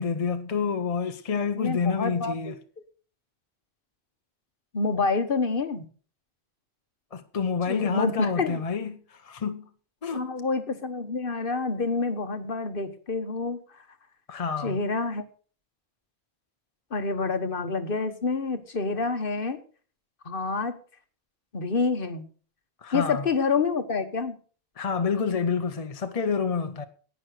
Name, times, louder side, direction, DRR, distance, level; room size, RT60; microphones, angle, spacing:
voice 1, 0.0-2.6 7.1-9.7 10.0-10.3 14.3-14.8 22.8-23.3 24.8-26.8, left 5 dB, 40° left, 0.8 m, -28 dB
voice 2, 1.6-2.5 4.7-5.8 7.7-8.6 10.1-13.6 14.6-15.2 16.9-19.6 20.2-20.8 21.5-22.2 22.9-24.3, left 4 dB, 55° left, 1.4 m, -27 dB
11.0 x 9.3 x 6.5 m
omnidirectional pair, 1.1 m